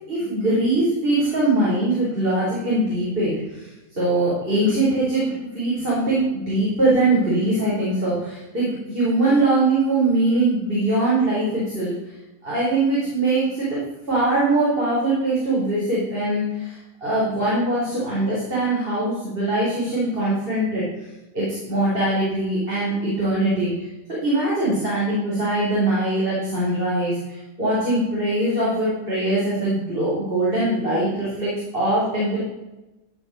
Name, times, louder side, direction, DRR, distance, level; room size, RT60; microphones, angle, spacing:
voice 1, 0.1-3.7 4.0-12.1 12.4-20.8 21.3-23.9 24.2-32.4, right 2 dB, 40° right, -8 dB, 5.1 m, -22 dB
16.5 x 6.4 x 6.7 m, 1.0 s
omnidirectional pair, 1.5 m